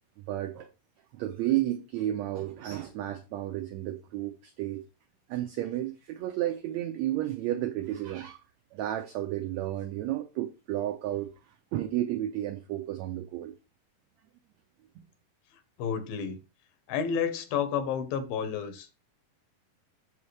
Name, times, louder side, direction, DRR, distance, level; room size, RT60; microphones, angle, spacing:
voice 1, 0.3-0.7 1.2-4.3 4.6-4.8 5.3-8.4 8.7-11.3 11.7-13.5, right 13 dB, 85° right, 1.5 m, -32 dB
voice 2, 15.8-16.4 16.9-19.0, left 7 dB, 85° left, 2.9 m, -30 dB
7.4 x 7.1 x 3.2 m
omnidirectional pair, 4.0 m